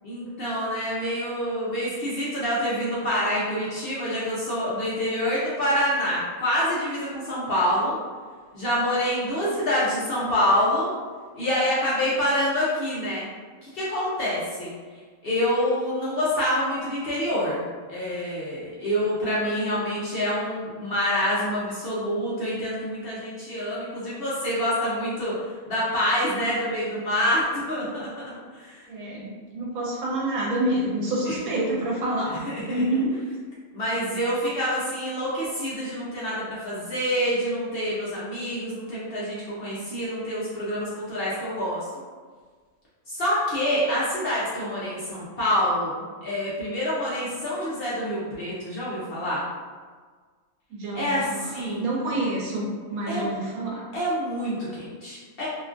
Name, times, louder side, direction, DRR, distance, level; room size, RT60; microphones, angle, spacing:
voice 1, 0.0-8.0 8.5-10.9 11.3-13.2 13.6-14.7 15.2-17.6 17.9-25.4 25.7-28.8 31.3-31.4 32.3-32.8 33.7-42.0 43.1-49.4 50.9-51.9 53.1-53.3 53.9-55.5, equal, 60° left, -8 dB, 0.6 m, -26 dB
voice 2, 28.9-33.2 50.7-51.5 51.7-53.8, right 1 dB, 85° right, -4 dB, 1.2 m, -27 dB
2.9 x 2.3 x 2.4 m, 1.5 s
omnidirectional pair, 1.5 m